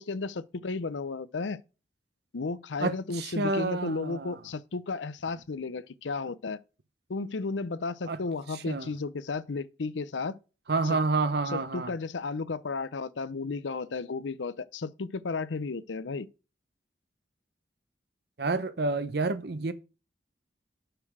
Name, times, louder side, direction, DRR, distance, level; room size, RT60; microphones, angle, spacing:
voice 1, 0.0-1.6 2.3-6.6 7.1-10.4 10.8-11.0 11.5-16.3, left 4 dB, 90° left, 0.6 m, -33 dB
voice 2, 2.8-4.3 8.1-8.2 8.7-8.9 10.7-11.9 18.4-19.7, right 3 dB, 60° right, 0.8 m, -29 dB
6.7 x 5.9 x 6.0 m
head